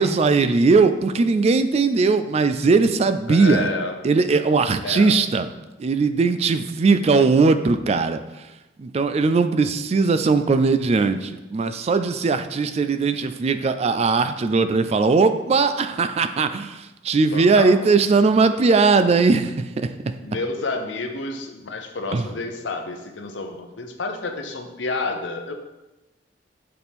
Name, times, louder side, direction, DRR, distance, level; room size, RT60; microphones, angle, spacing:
voice 1, 0.0-3.7 4.0-5.5 5.8-8.2 8.8-19.9 22.1-22.2, right 4 dB, 35° right, 10 dB, 0.3 m, -19 dB
voice 2, 3.3-4.0 4.8-5.2 17.3-17.8 20.2-25.5, left 3 dB, 85° left, 5 dB, 0.7 m, -29 dB
6.6 x 4.3 x 3.5 m, 1.0 s
head